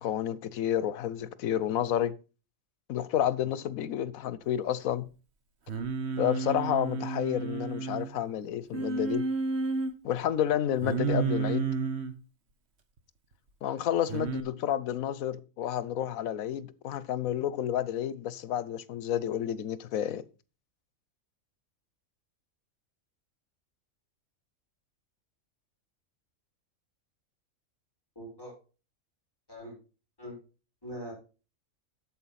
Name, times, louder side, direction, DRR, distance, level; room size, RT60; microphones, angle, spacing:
voice 1, 0.0-2.1 2.9-5.1 6.2-9.2 10.0-11.7 13.6-20.2, left 10 dB, 85° left, 1.1 m, -30 dB
Singing, 5.7-8.1 8.7-9.9 10.8-12.1 14.1-14.4, right 5 dB, 55° right, 1.4 m, -31 dB
voice 2, 28.1-28.5 29.5-29.8 30.2-30.4 30.8-31.1, equal, 15° left, 4.7 m, -41 dB
8.5 x 7.3 x 5.7 m
omnidirectional pair, 1.4 m